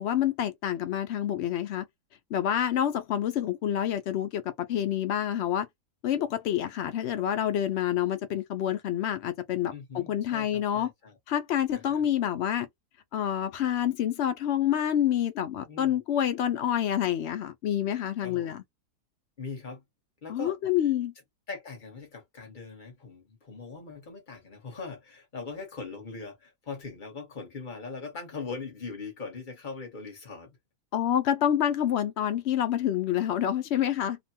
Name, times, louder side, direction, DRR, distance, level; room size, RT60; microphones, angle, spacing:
voice 1, 0.0-1.9 2.3-5.7 6.0-10.9 11.3-12.7 13.1-18.6 20.3-21.1 30.9-34.2, left 10 dB, 90° left, 0.5 m, -27 dB
voice 2, 9.7-11.2 11.7-12.0 15.7-16.0 18.2-18.5 19.4-19.8 20.2-20.6 21.5-30.6, left 4 dB, 35° left, 1.0 m, -41 dB
2.9 x 2.2 x 2.7 m
omnidirectional pair, 1.7 m